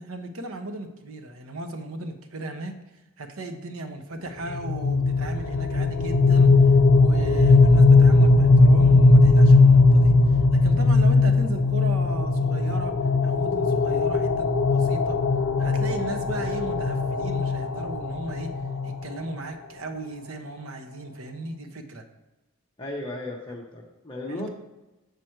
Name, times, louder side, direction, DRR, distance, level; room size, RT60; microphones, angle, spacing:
voice 1, 0.0-2.8 3.2-6.5 7.0-10.1 10.5-12.9 13.2-15.2 15.6-18.5 18.8-22.0 24.3-24.5, right 2 dB, 75° right, 7 dB, 0.8 m, -36 dB
sound 1, 4.5-19.4, left 3 dB, 80° left, 0.6 m, -18 dB
voice 2, 22.8-24.5, left 2 dB, 20° left, -2 dB, 0.7 m, -35 dB
7.8 x 5.0 x 4.5 m, 1.1 s
head